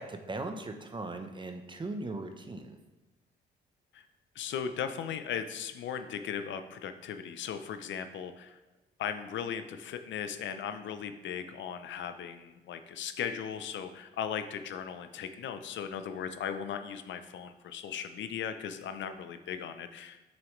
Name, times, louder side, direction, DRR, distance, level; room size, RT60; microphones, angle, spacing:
voice 1, 0.0-2.8, right 2 dB, 25° right, 6 dB, 0.8 m, -39 dB
voice 2, 4.3-8.6 9.0-20.2, left 8 dB, 70° left, 9 dB, 0.6 m, -37 dB
7.0 x 6.3 x 3.2 m, 1.1 s
cardioid pair, 90°, 20 cm